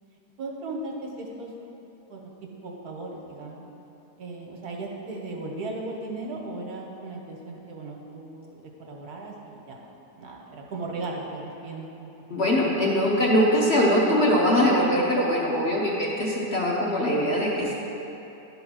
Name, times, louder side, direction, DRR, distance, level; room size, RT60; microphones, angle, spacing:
voice 1, 0.4-1.5 2.1-2.2 2.6-3.6 4.2-9.8 10.2-12.4, right 2 dB, 65° right, 0 dB, 1.4 m, -37 dB
voice 2, 12.3-17.7, equal, 45° left, -4 dB, 1.1 m, -22 dB
11.0 x 3.9 x 6.1 m, 3.0 s
omnidirectional pair, 1.8 m